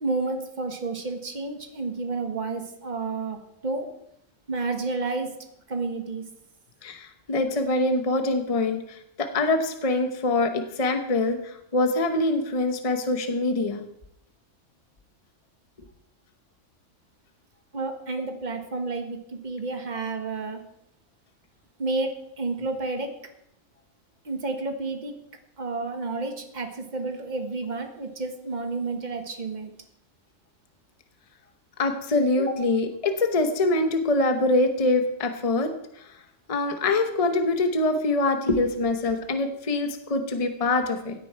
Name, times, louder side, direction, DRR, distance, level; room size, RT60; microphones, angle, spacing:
voice 1, 0.0-3.9 4.5-5.3 5.7-6.2 17.7-20.6 21.8-23.1 24.2-25.1 25.6-29.7, right 3 dB, 35° right, 5 dB, 1.5 m, -30 dB
voice 2, 6.8-13.8 31.8-35.7 36.0-36.1 36.5-41.1, left 2 dB, 30° left, 6 dB, 1.0 m, -24 dB
16.5 x 9.1 x 4.5 m, 0.78 s
omnidirectional pair, 1.3 m